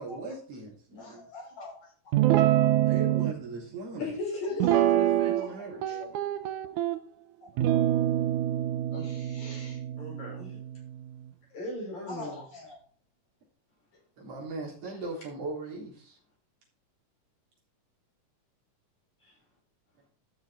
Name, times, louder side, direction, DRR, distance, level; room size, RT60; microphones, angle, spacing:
voice 1, 0.0-1.3 2.9-4.1 5.0-5.8 14.2-16.2, right 3 dB, 45° right, -4 dB, 4.6 m, -39 dB
voice 2, 1.0-2.2 4.4-4.9 5.4-6.3 7.4-7.5 8.9-9.8 12.1-12.8, left 2 dB, 75° left, -4 dB, 7.7 m, -45 dB
Guitar, 2.1-3.3 4.6-5.5 5.8-7.0 7.6-11.0, right 13 dB, 75° right, 2.2 m, -26 dB
voice 3, 4.0-5.1 10.0-10.6 11.5-12.4, left 2 dB, 60° left, -3 dB, 7.1 m, -36 dB
13.0 x 6.4 x 4.3 m, 0.41 s
omnidirectional pair, 3.7 m